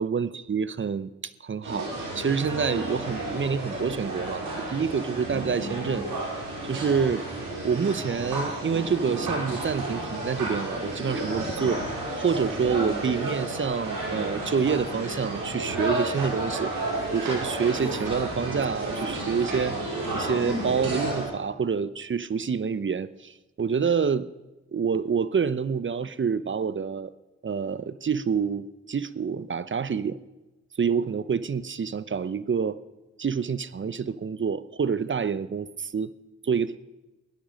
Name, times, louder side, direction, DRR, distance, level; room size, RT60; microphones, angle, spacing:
voice 1, 0.0-1.9 2.1-6.0 6.6-7.3 7.6-11.8 12.2-16.7 17.1-19.8 20.1-24.3 24.7-27.1 27.4-30.2 30.8-32.8 33.2-36.1 36.4-36.8, right 6 dB, 35° right, 17 dB, 0.7 m, -27 dB
sound 1, 1.6-21.2, right 1 dB, 85° right, 5.3 m, -32 dB
16.0 x 11.5 x 5.2 m, 1.1 s
supercardioid pair, 45°, 32 cm